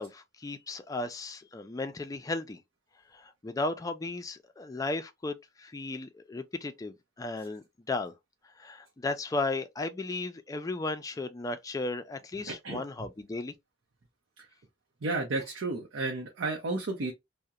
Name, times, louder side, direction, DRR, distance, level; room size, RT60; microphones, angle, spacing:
voice 1, 0.0-2.6 3.1-8.1 8.6-13.5, left 2 dB, 20° left, 0.3 m, -35 dB
voice 2, 12.5-12.8 14.4-14.5 15.0-17.1, right 3 dB, 80° right, 0.6 m, -32 dB
2.3 x 2.0 x 2.7 m
head